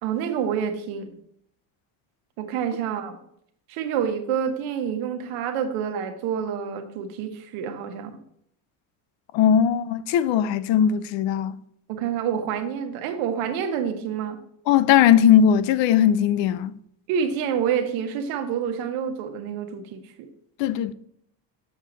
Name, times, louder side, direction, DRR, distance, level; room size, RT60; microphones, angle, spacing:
voice 1, 0.0-1.1 2.4-3.2 3.7-8.2 11.9-14.4 17.1-20.0, right 8 dB, 80° right, 1.2 m, -28 dB
voice 2, 9.3-11.5 14.7-16.7 20.6-20.9, left 9 dB, 65° left, 0.6 m, -19 dB
7.2 x 6.5 x 3.9 m
cardioid pair, 100°, 49 cm